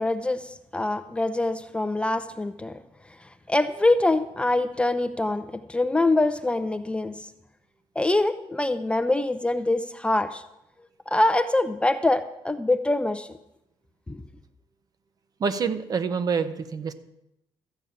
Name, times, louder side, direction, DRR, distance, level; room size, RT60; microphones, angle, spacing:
voice 1, 0.0-2.7 3.5-7.2 8.0-10.4 11.1-13.3 14.1-14.2, left 2 dB, 10° left, 10 dB, 0.5 m, -24 dB
voice 2, 15.4-16.9, right 5 dB, 40° right, 11 dB, 0.9 m, -26 dB
13.5 x 5.4 x 8.6 m, 0.86 s
cardioid pair, 120°, 10 cm